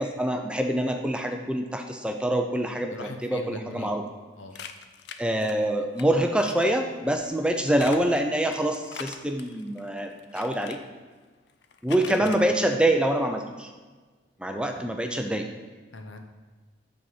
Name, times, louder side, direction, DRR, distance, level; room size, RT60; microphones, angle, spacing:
voice 1, 0.0-2.9 3.2-4.0 5.2-10.8 11.8-13.7 14.4-15.5, right 1 dB, 5° right, 5 dB, 0.4 m, -25 dB
voice 2, 2.9-3.9 4.4-4.5 12.2-12.4 14.7-14.8 15.9-16.2, left 2 dB, 80° left, 5 dB, 0.9 m, -40 dB
sound 1, 4.5-6.0 6.4-6.8 7.6-10.8 11.5-12.4, left 7 dB, 60° left, 0.5 m, -42 dB
9.3 x 4.2 x 5.5 m, 1.4 s
head